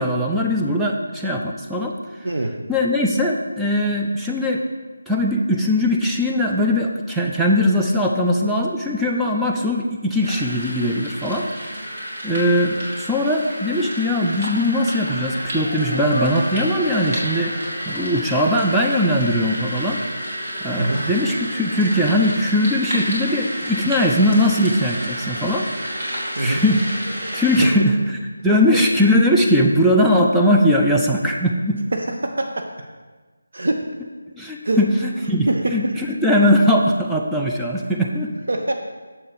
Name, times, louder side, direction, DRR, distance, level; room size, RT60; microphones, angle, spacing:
voice 1, 0.0-1.9 2.7-4.6 5.1-11.5 12.2-17.6 17.9-20.0 20.6-25.7 26.4-26.9 27.3-28.2 28.4-31.8 34.4-38.3, left 1 dB, ahead, -3 dB, 0.4 m, -20 dB
sound 1, 10.2-27.7, equal, 45° right, 2.5 m, -30 dB
sound 2, 15.5-19.4, equal, 90° right, 1.6 m, -35 dB
voice 2, 31.9-32.9 33.5-33.8 34.6-34.8 35.5-35.8 38.5-38.7, right 2 dB, 65° right, 3 dB, 0.6 m, -23 dB
6.8 x 5.4 x 5.1 m, 1.4 s
figure-of-eight pair, 160°, 0 cm